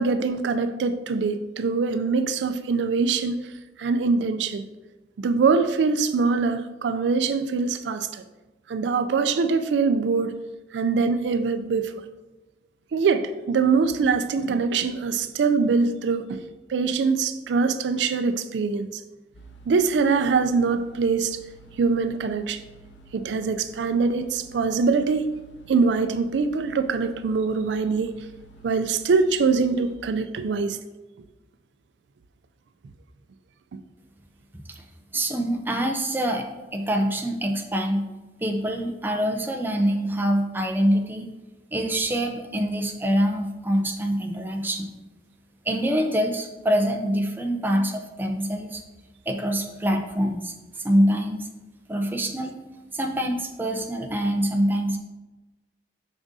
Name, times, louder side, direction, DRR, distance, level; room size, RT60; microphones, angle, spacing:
voice 1, 0.0-3.4 3.8-4.6 5.2-8.2 8.7-10.3 10.7-11.9 12.9-16.4 16.7-19.0 19.7-21.4 21.8-22.6 23.1-25.3 25.7-28.1 28.6-30.8, right 4 dB, 80° right, 10 dB, 0.4 m, -23 dB
sound 1, 19.3-30.0, right 3 dB, 90° left, 0.6 m, -51 dB
voice 2, 35.1-36.5 36.7-38.0 38.4-41.3 41.7-44.9 45.7-48.8 49.3-51.5 51.9-52.5 52.9-55.0, equal, 10° right, 4 dB, 0.5 m, -25 dB
7.0 x 5.0 x 2.7 m, 1.1 s
head